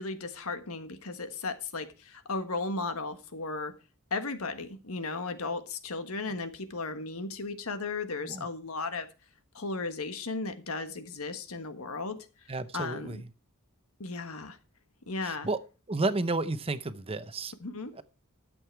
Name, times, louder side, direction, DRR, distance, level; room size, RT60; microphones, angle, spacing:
voice 1, 0.0-3.7 4.1-9.1 9.5-13.2 14.0-14.6 15.1-15.5 17.6-17.9, left 3 dB, 85° left, 1.5 m, -35 dB
voice 2, 12.5-13.2 15.2-15.6 15.9-17.5 18.0-18.1, right 2 dB, 25° right, 0.8 m, -31 dB
12.5 x 7.8 x 4.6 m
head